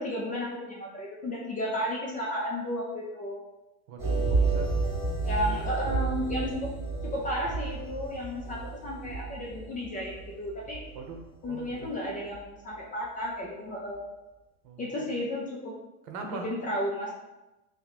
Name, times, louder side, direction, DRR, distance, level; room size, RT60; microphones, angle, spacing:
voice 1, 0.0-3.4 5.2-6.7 7.0-10.9 11.4-14.0 14.8-15.8 16.2-17.1, left 1 dB, 20° left, -3 dB, 0.4 m, -33 dB
voice 2, 3.9-4.7 10.9-11.2 11.5-11.9 14.6-15.1 16.1-16.5, right 4 dB, 55° right, 3 dB, 0.8 m, -41 dB
sound 1, 4.0-11.9 12.3-12.4, right 4 dB, 15° right, 1.1 m, -31 dB
2.9 x 2.7 x 4.1 m, 1.0 s
supercardioid pair, 120°, 44 cm